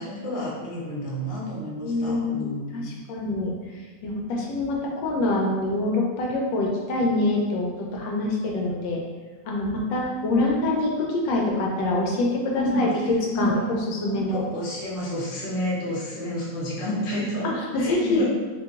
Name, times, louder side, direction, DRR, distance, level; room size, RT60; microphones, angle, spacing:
voice 1, 0.0-2.9 12.6-13.6 14.1-18.2, equal, 45° left, -7 dB, 1.1 m, -30 dB
voice 2, 1.8-3.5 4.0-9.0 9.5-12.9 13.4-13.6 13.9-14.4 17.4-18.2, left 2 dB, 85° left, -2 dB, 1.4 m, -25 dB
3.0 x 2.9 x 3.5 m, 1.4 s
omnidirectional pair, 1.9 m